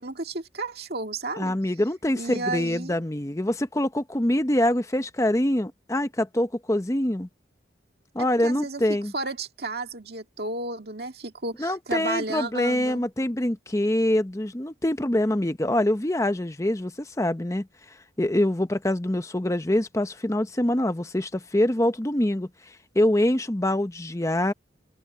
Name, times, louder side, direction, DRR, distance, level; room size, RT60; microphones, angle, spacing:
voice 1, 0.0-1.5 2.2-3.0 8.2-8.8 9.1-13.0, right 2 dB, 55° right, 2.1 m, -33 dB
voice 2, 1.4-7.3 8.1-9.1 11.6-17.7 18.2-22.5 22.9-24.5, left 1 dB, 15° left, 0.7 m, -25 dB
open air
head